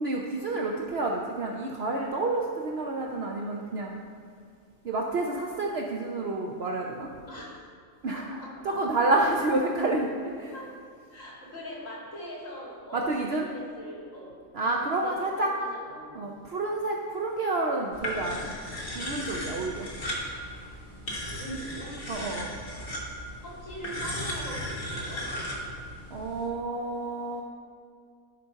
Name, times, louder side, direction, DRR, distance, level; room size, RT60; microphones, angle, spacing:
voice 1, 0.0-4.0 4.8-7.1 8.0-8.2 8.6-10.5 12.9-13.5 14.5-15.5 16.1-18.6 18.9-19.9 22.1-22.6 26.1-27.4, right 2 dB, 60° right, 0 dB, 0.8 m, -29 dB
voice 2, 7.3-7.6 8.1-8.8 10.5-10.6 11.1-14.3 15.0-16.3 21.2-22.0 23.4-25.2, equal, 75° left, -5 dB, 2.9 m, -41 dB
sound 1, 17.9-26.5, equal, 45° left, 1.7 m, -36 dB
12.5 x 4.2 x 5.6 m, 2.2 s
omnidirectional pair, 1.4 m